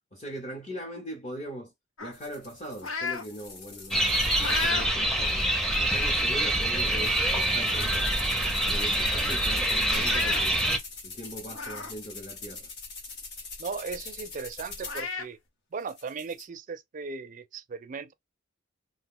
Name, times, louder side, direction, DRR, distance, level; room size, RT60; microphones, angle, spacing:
voice 1, 0.1-1.7 2.0-4.1 4.5-5.5 5.8-8.2 8.6-10.6 11.0-12.7, right 1 dB, 35° left, 0.8 m, -40 dB
sound 1, 2.0-3.3 3.7-4.9 5.4-5.5 6.4-6.5 6.9-7.1 7.4-8.0 8.3-8.4 8.7-8.8 9.9-10.4 11.5-11.9 12.4-12.5 14.1-14.2 14.8-15.3, left 4 dB, 90° left, 0.6 m, -34 dB
sound 2, 2.1-4.8 5.2-15.1 15.8-16.4, left 4 dB, 60° left, 1.0 m, -44 dB
sound 3, 3.9-10.8, right 1 dB, ahead, 0.6 m, -26 dB
voice 2, 13.6-15.4 15.7-18.1, right 5 dB, 40° right, 0.4 m, -37 dB
2.5 x 2.2 x 3.6 m
head